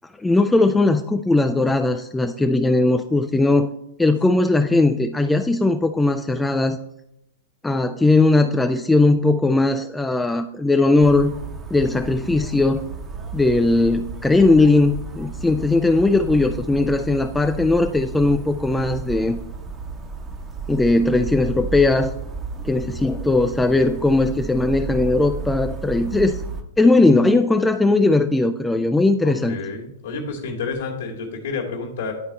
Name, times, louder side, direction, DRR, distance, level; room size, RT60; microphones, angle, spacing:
voice 1, 0.2-3.7 4.0-6.8 7.6-11.3 11.7-12.8 13.3-19.4 20.7-22.1 22.6-26.4 26.8-29.6, left 2 dB, 5° left, 7 dB, 0.3 m, -18 dB
sound 1, 11.0-26.6, right 4 dB, 20° right, 0.9 m, -33 dB
voice 2, 29.2-32.1, left 4 dB, 65° left, -4 dB, 1.6 m, -29 dB
10.5 x 4.0 x 4.1 m, 0.83 s
figure-of-eight pair, 100°, 0 cm